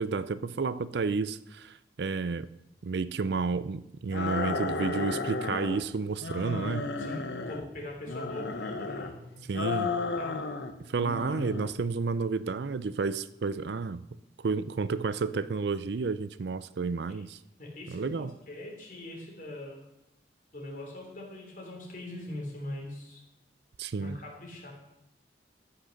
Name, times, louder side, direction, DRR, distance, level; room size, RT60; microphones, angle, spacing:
voice 1, 0.0-2.5 2.8-6.9 9.5-9.9 10.8-14.0 14.4-17.4 17.9-18.3 23.8-24.2, right 4 dB, 70° right, 0.5 m, -31 dB
sound 1, 4.1-5.8 6.2-7.7 8.1-9.1 9.5-10.7 11.0-11.7, left 3 dB, 80° left, 1.0 m, -33 dB
voice 2, 7.0-9.8 10.1-10.4 17.1-17.2 17.6-19.8 20.5-23.2 24.0-24.7, left 1 dB, 50° left, 3.4 m, -42 dB
13.5 x 6.0 x 6.5 m
head